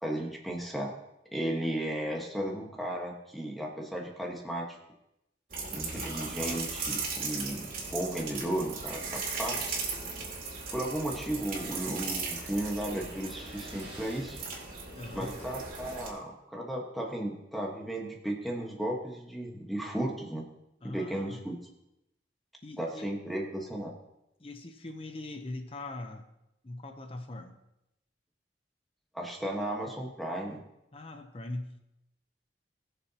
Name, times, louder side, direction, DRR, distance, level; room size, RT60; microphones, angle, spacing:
voice 1, 0.0-0.9 1.3-4.7 5.7-9.8 10.7-14.4 15.1-20.4 20.9-21.6 22.8-23.9 29.1-30.6, right 1 dB, ahead, -1 dB, 1.3 m, -35 dB
sound 1, 5.5-16.1, right 4 dB, 50° right, 2.7 m, -37 dB
sound 2, 10.7-15.5, right 2 dB, 30° right, 1.8 m, -54 dB
voice 2, 15.0-15.4 20.8-21.4 22.6-23.1 24.4-26.3 26.6-27.5 30.9-31.8, left 2 dB, 30° left, 6 dB, 0.7 m, -41 dB
20.5 x 6.9 x 2.8 m, 0.86 s
head